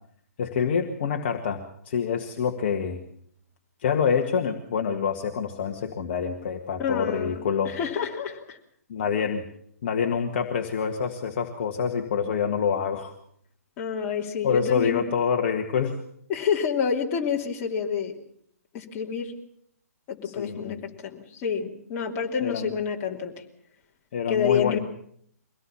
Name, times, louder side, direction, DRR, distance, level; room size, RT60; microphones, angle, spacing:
voice 1, 0.4-1.6 1.9-3.0 3.8-7.8 8.9-9.4 9.8-13.1 14.4-16.0 20.2-20.8 22.4-22.7 24.1-24.8, left 7 dB, 40° left, 4 dB, 1.8 m, -26 dB
voice 2, 6.8-7.4 7.6-8.6 13.8-15.0 16.3-18.2 18.7-19.3 20.1-23.4 24.3-24.8, left 7 dB, 25° left, 0 dB, 2.9 m, -28 dB
23.5 x 18.0 x 7.2 m, 0.67 s
figure-of-eight pair, 130°, 9 cm